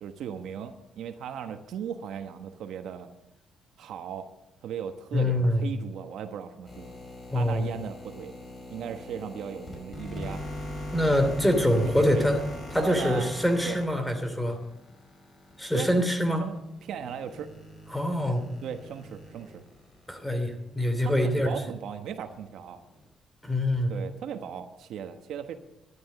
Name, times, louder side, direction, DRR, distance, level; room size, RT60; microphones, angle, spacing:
voice 1, 0.0-3.1 3.8-4.3 4.6-6.9 7.3-8.3 8.7-10.4 11.8-12.4 12.7-13.3 13.6-13.8 15.7-15.9 16.4-17.5 18.6-19.6 21.0-22.8 23.9-25.5, right 8 dB, 75° right, 8 dB, 1.1 m, -37 dB
voice 2, 5.1-5.6 7.3-7.6 10.9-12.4 12.7-14.6 15.6-16.4 17.9-18.4 20.1-21.5 23.4-23.9, left 1 dB, 5° left, 7 dB, 2.9 m, -25 dB
sound 1, 6.6-20.7 21.1-21.2 21.9-23.0, left 1 dB, 35° left, 5.2 m, -41 dB
13.0 x 11.5 x 6.8 m, 0.86 s
cardioid pair, 90°, 0 cm